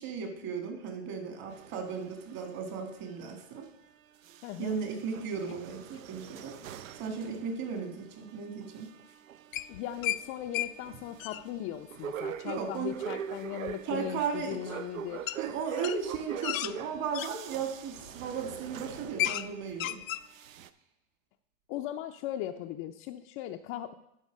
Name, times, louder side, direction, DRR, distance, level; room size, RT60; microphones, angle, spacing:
voice 1, 0.0-3.7 4.6-6.6 7.0-8.9 12.4-13.0 13.8-14.6 15.4-20.0, right 6 dB, 45° right, 4 dB, 2.2 m, -36 dB
sound 1, 1.5-3.9 4.2-19.9 20.2-20.7, right 9 dB, 85° right, 0.6 m, -44 dB
voice 2, 4.4-4.8 9.7-15.3 21.7-24.0, left 12 dB, 35° left, 3 dB, 0.4 m, -38 dB
sound 2, 9.5-10.2 10.5-10.7 11.0-11.4 13.7-13.8 15.3-15.4 15.8-17.3 18.0-18.3 18.6-18.7 19.0-19.5 19.7-20.2, left 14 dB, 85° left, 0.5 m, -33 dB
11.5 x 4.3 x 5.2 m, 0.84 s
hypercardioid pair, 115°, 39 cm